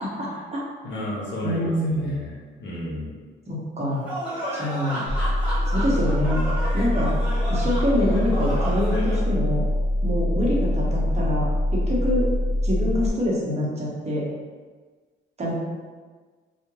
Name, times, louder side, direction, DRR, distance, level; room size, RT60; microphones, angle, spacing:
voice 1, 0.0-0.6 1.4-2.1 3.5-4.1 4.5-5.0 5.7-6.5 6.7-7.1 7.5-9.6 10.0-12.3 12.6-14.2 15.4-15.5, left 1 dB, 35° right, -5 dB, 0.8 m, -25 dB
voice 2, 0.8-2.3 2.6-3.1, left 1 dB, 65° left, -5 dB, 0.7 m, -32 dB
sound 1, 4.1-9.2, right 1 dB, 5° right, 1.0 m, -32 dB
sound 2, 5.1-13.1, left 1 dB, 30° left, 0.8 m, -24 dB
2.3 x 2.1 x 3.0 m, 1.4 s
cardioid pair, 90°, 20 cm